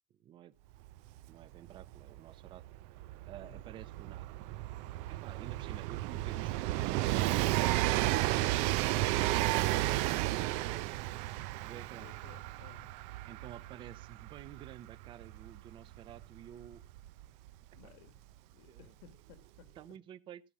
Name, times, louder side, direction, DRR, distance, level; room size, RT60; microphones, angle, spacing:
voice 1, 0.2-0.5 1.3-2.6 3.3-4.4 5.1-8.9 11.6-12.1 13.3-16.8 17.8-17.9 18.7-18.9 19.8-20.4, right 11 dB, 45° right, 0.9 m, -51 dB
Train, 0.9-1.0 1.2-17.8 18.8-18.9, right 17 dB, 75° right, 0.5 m, -33 dB
voice 2, 3.4-3.7 11.6-12.9 17.7-19.7, left 9 dB, 85° left, 1.6 m, -59 dB
16.0 x 5.7 x 6.2 m
cardioid pair, 135°, 12 cm